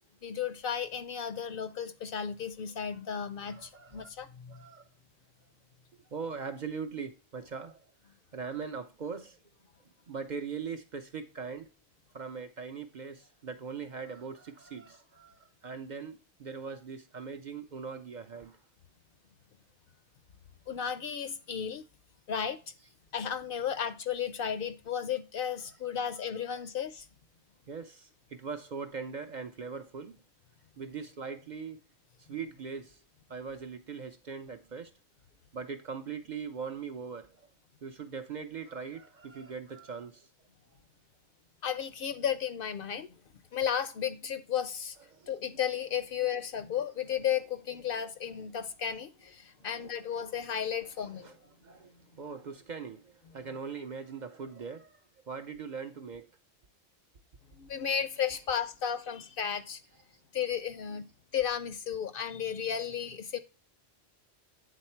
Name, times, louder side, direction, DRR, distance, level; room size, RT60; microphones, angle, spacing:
voice 1, 0.2-4.5 20.7-21.8 22.3-22.6 23.1-27.1 41.6-43.1 43.5-45.0 45.3-51.3 57.5-59.8 60.3-61.1 61.3-63.4, left 8 dB, 60° left, 0.7 m, -34 dB
voice 2, 3.4-4.1 4.5-4.9 6.1-7.8 8.3-9.4 10.1-11.7 12.1-18.6 27.7-30.2 30.8-31.8 32.3-33.0 33.3-34.9 35.5-37.5 37.8-40.3 45.1-45.4 51.2-51.4 51.6-55.0 55.3-56.2, right 5 dB, 55° right, 0.6 m, -41 dB
8.4 x 4.0 x 4.3 m
omnidirectional pair, 1.1 m